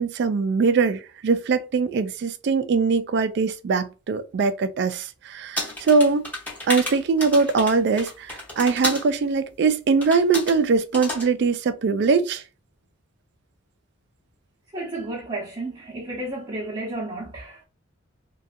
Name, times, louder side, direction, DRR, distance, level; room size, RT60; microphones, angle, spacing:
voice 1, 0.0-6.2 6.7-12.4, right 4 dB, 60° right, 0.3 m, -22 dB
sound 1, 5.6-9.1 10.0-10.6 10.9-11.3, left 1 dB, 10° left, 0.9 m, -31 dB
voice 2, 14.7-17.6, right 2 dB, 25° right, 0.7 m, -32 dB
2.7 x 2.2 x 2.5 m
head